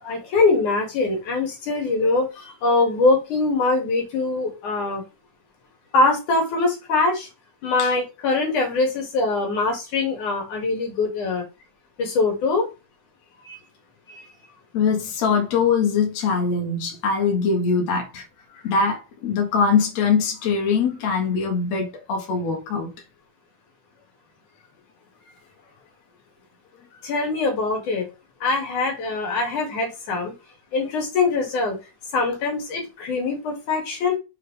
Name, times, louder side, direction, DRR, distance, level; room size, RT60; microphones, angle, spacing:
voice 1, 0.0-5.0 5.9-7.3 7.6-11.4 12.0-12.7 13.4-13.6 14.2-14.3 18.5-18.6 27.0-28.1 28.4-30.3 30.7-31.8 32.1-34.2, left 3 dB, 80° left, 3.9 m, -23 dB
voice 2, 14.7-18.2 18.6-22.9, left 5 dB, 60° left, 2.9 m, -22 dB
7.6 x 4.7 x 3.4 m
omnidirectional pair, 3.5 m